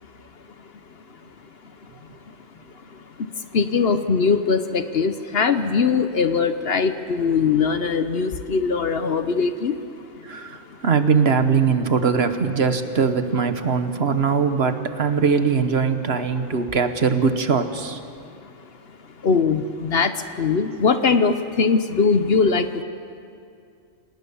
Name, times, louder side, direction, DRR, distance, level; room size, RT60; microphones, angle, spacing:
voice 1, 3.5-9.7 19.2-20.1 20.4-22.7, left 5 dB, 55° left, 10 dB, 1.0 m, -21 dB
voice 2, 10.2-18.0, right 5 dB, 55° right, 9 dB, 1.3 m, -21 dB
28.0 x 18.5 x 7.0 m, 2.4 s
omnidirectional pair, 1.3 m